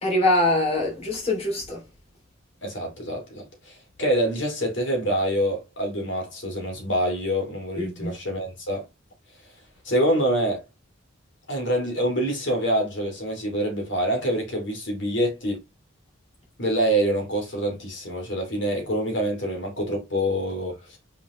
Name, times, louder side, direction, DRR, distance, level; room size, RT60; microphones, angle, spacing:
voice 1, 0.0-1.8 7.8-8.1, left 1 dB, 30° left, 2.9 m, -23 dB
voice 2, 2.6-8.8 9.8-10.6 11.5-15.6 16.6-21.0, right 1 dB, 60° left, 2.7 m, -26 dB
6.9 x 5.2 x 3.1 m
head